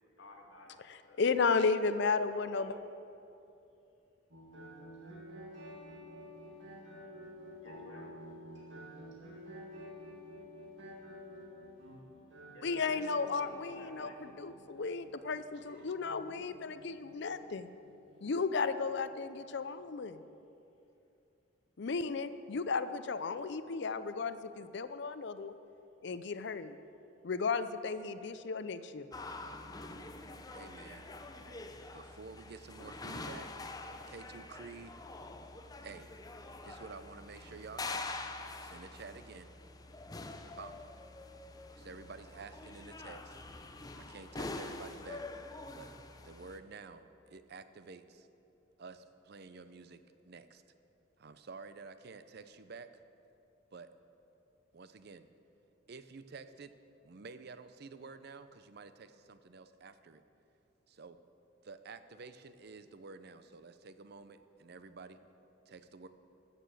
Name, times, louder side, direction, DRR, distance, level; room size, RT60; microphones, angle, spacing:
voice 1, 0.2-0.8 1.1-1.2 2.3-2.7 7.6-8.1 12.5-13.0 13.6-14.2 30.8-31.8, left 2 dB, 85° left, 0 dB, 2.0 m, -56 dB
voice 2, 0.9-2.7 12.6-17.7 18.2-20.2 21.8-25.5 26.0-26.8 27.2-29.1, left 4 dB, 60° left, 12 dB, 0.5 m, -34 dB
sound 1, 4.3-19.8, equal, 70° right, 2.1 m, -51 dB
sound 2, 29.1-46.6, left 2 dB, 20° left, 0.6 m, -45 dB
voice 3, 30.5-31.0 31.9-33.5 34.1-35.0 35.8-36.1 36.6-38.1 38.6-39.5 40.6-40.8 41.8-43.4 44.0-45.3 45.7-45.9 46.2-48.3 48.8-50.6 51.2-52.9 53.7-53.9 54.7-55.3 55.9-56.7 57.0-60.2 60.9-61.2 61.6-65.2 65.7-66.1, right 4 dB, 55° right, 11 dB, 0.6 m, -50 dB
14.0 x 6.8 x 7.7 m, 2.7 s
head